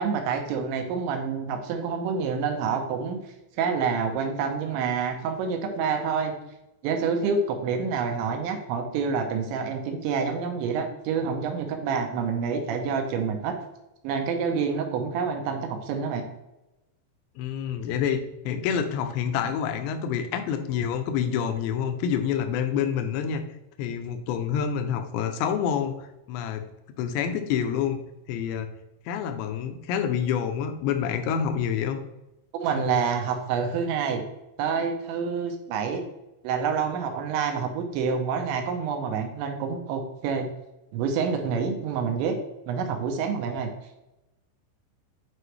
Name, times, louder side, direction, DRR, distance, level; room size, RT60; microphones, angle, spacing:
voice 1, 0.0-3.2 3.6-6.4 6.8-13.6 14.0-16.2 32.5-34.2 34.6-36.0 36.4-40.5 40.9-42.4 42.7-43.7, right 6 dB, 80° right, 4 dB, 2.9 m, -27 dB
voice 2, 17.4-23.4 23.8-26.7 27.0-28.0 28.3-28.7 29.1-32.0, left 8 dB, 80° left, 7 dB, 2.5 m, -27 dB
8.7 x 4.8 x 3.2 m, 0.95 s
omnidirectional pair, 5.7 m